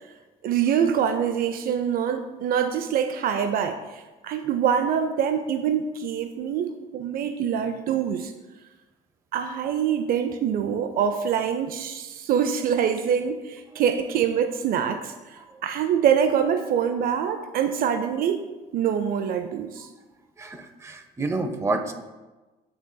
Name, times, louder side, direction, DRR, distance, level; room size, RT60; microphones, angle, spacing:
voice 1, 0.4-8.3 9.3-15.1 15.6-18.4 18.7-19.9, right 8 dB, 60° right, 8 dB, 0.4 m, -25 dB
voice 2, 20.4-21.9, right 3 dB, 15° right, 4 dB, 0.6 m, -29 dB
11.5 x 3.9 x 2.2 m, 1.2 s
cardioid pair, 110°, 17 cm